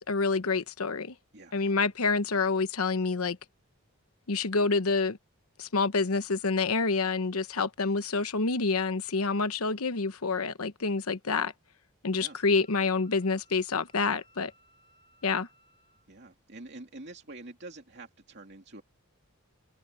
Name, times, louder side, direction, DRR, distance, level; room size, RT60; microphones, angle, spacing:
voice 1, 0.1-1.1 1.5-3.4 4.3-5.2 5.6-11.5 12.0-14.5 15.2-15.5, left 4 dB, 85° left, 1.0 m, -27 dB
Wind instrument woodwind instrument, 12.1-16.1, equal, 25° left, 4.0 m, -63 dB
voice 2, 16.1-18.8, right 2 dB, 50° right, 2.8 m, -46 dB
open air
head